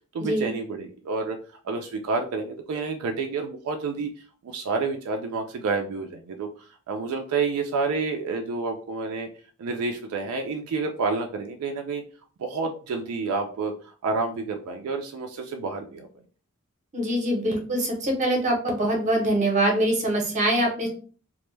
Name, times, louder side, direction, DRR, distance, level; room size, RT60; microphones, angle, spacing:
voice 1, 0.1-1.4 1.6-4.1 4.4-9.3 9.6-12.0 12.4-16.1, right 4 dB, 75° right, 4 dB, 0.3 m, -29 dB
voice 2, 16.9-20.9, right 1 dB, 35° right, 1 dB, 0.7 m, -24 dB
2.1 x 2.0 x 3.1 m, 0.40 s
head